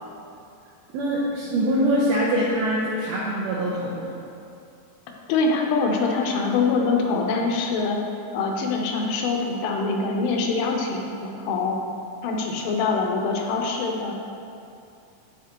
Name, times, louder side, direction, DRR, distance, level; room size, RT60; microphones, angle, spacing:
voice 1, 0.9-4.1, right 1 dB, 85° right, -5 dB, 2.1 m, -24 dB
voice 2, 5.3-8.0 8.3-11.8 12.2-14.1, left 4 dB, 80° left, 1 dB, 3.3 m, -24 dB
10.0 x 7.2 x 3.0 m, 2.6 s
omnidirectional pair, 5.6 m